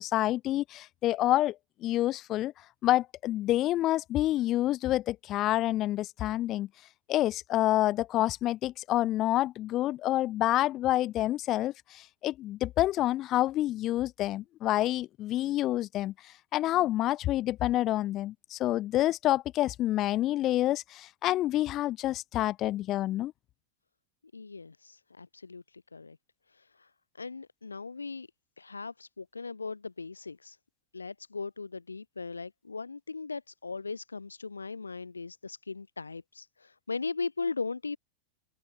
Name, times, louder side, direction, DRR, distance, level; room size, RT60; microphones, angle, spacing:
voice 1, 0.0-1.5 1.8-2.5 2.8-6.7 7.1-16.1 16.5-23.3, left 14 dB, 35° left, 4.9 m, -28 dB
voice 2, 24.3-26.2 26.5-28.3 28.6-30.6 30.9-38.0, left 4 dB, 80° left, 5.9 m, -38 dB
figure-of-eight pair, 90°, 0 cm